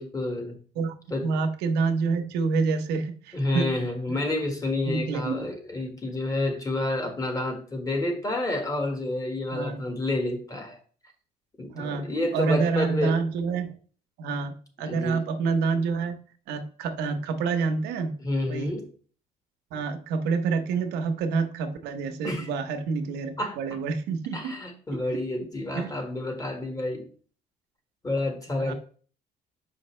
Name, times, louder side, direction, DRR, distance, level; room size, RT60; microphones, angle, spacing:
voice 1, 0.0-0.6 1.1-1.3 3.3-10.8 11.6-13.2 14.8-15.2 18.2-18.9 22.2-22.5 23.4-23.6 24.3-27.0 28.0-28.7, left 2 dB, 20° left, 4 dB, 1.6 m, -29 dB
voice 2, 1.2-4.2 4.9-5.5 9.5-9.8 11.7-13.7 14.2-16.2 16.5-18.2 18.5-18.7 19.7-24.6 24.9-25.0 25.7-25.9 28.6-28.7, right 4 dB, 90° right, 6 dB, 0.9 m, -28 dB
6.4 x 5.2 x 3.2 m, 0.43 s
cardioid pair, 110°, 17 cm